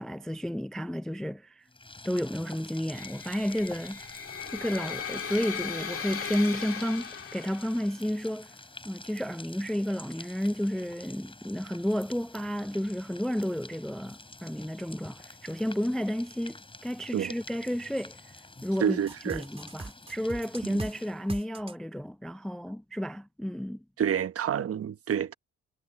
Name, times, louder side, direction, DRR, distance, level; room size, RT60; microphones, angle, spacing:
voice 1, 0.0-1.6 2.1-4.0 4.5-8.5 8.8-18.2 18.6-19.0 19.3-23.8, equal, ahead, 0.3 m, -31 dB
sound 1, 1.7-21.3, left 2 dB, 15° left, 6.8 m, -48 dB
sound 2, 2.9-8.0, left 7 dB, 45° left, 3.2 m, -38 dB
voice 2, 18.8-19.4 20.7-20.8 24.0-25.3, right 9 dB, 50° right, 1.0 m, -28 dB
sound 3, 19.1-20.9 21.3-21.7, right 2 dB, 20° right, 3.6 m, -39 dB
cardioid pair, 90°, 30 cm